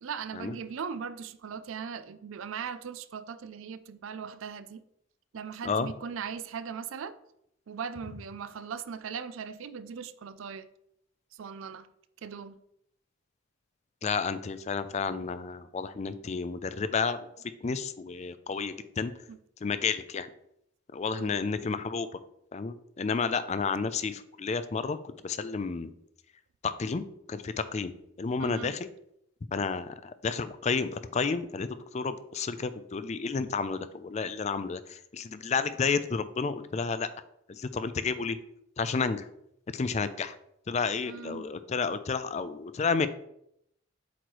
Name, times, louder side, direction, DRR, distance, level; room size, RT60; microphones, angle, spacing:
voice 1, 0.0-4.8 5.3-7.2 7.7-10.7 11.3-11.9 12.2-12.6 19.3-19.4 21.1-21.5 28.4-28.7 41.0-41.5, right 6 dB, 70° right, 0.4 m, -39 dB
voice 2, 14.0-17.3 17.6-19.1 19.6-20.3 20.9-22.1 22.5-25.9 26.6-27.0 27.3-28.9 29.5-37.1 37.5-38.4 38.8-39.2 39.7-40.4 40.7-43.1, left 5 dB, 35° left, 0.3 m, -31 dB
7.9 x 3.1 x 4.6 m
head